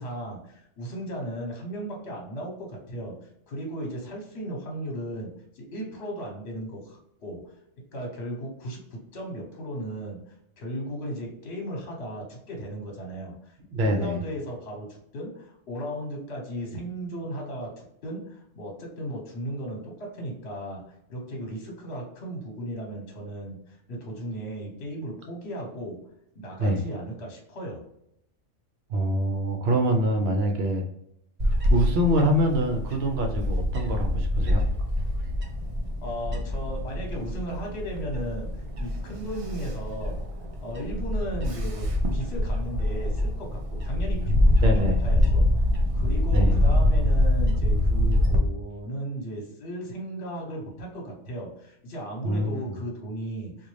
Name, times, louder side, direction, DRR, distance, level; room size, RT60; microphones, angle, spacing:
voice 1, 0.0-7.4 7.9-10.2 10.6-13.6 13.8-20.8 21.1-26.0 26.3-27.8 36.0-38.5 38.8-40.2 40.6-44.7 45.0-45.5 45.9-53.7, right 1 dB, 60° left, 0 dB, 1.2 m, -36 dB
voice 2, 13.7-14.2 26.6-26.8 28.9-30.8 31.4-34.6 44.6-45.0 46.3-46.5 52.2-52.8, right 1 dB, 65° right, 3 dB, 0.8 m, -25 dB
Bird / Wind, 31.4-48.4, left 1 dB, 45° right, 0.4 m, -25 dB
3.7 x 2.4 x 3.1 m, 0.78 s
omnidirectional pair, 1.2 m